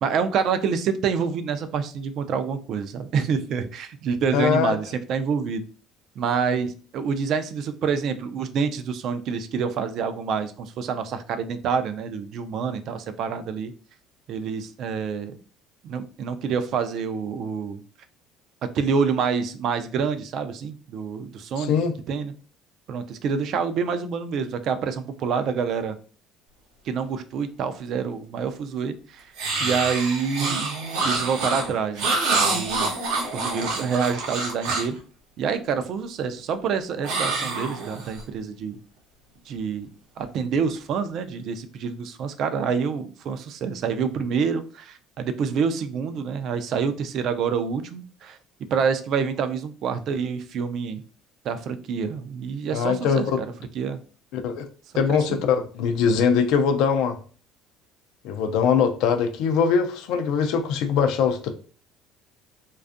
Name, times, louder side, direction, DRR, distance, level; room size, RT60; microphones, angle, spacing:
voice 1, 0.0-5.6 6.2-13.7 14.3-15.4 15.8-17.8 18.7-21.7 22.1-22.3 22.9-26.0 26.9-29.2 29.6-30.7 31.0-32.1 32.4-32.9 33.3-35.0 35.4-38.8 39.5-39.9 40.2-48.4 48.7-51.0 51.5-53.5 53.8-54.0 55.1-55.4, right 6 dB, 55° right, 0.3 m, -27 dB
voice 2, 4.3-4.8 21.6-21.9 52.7-53.4 54.3-54.7 54.9-57.2 58.2-61.5, left 6 dB, 75° left, 0.3 m, -22 dB
sound 1, 29.4-35.0 37.0-38.2, right 3 dB, 90° right, 0.7 m, -26 dB
2.5 x 2.3 x 2.4 m
cardioid pair, 125°, 0 cm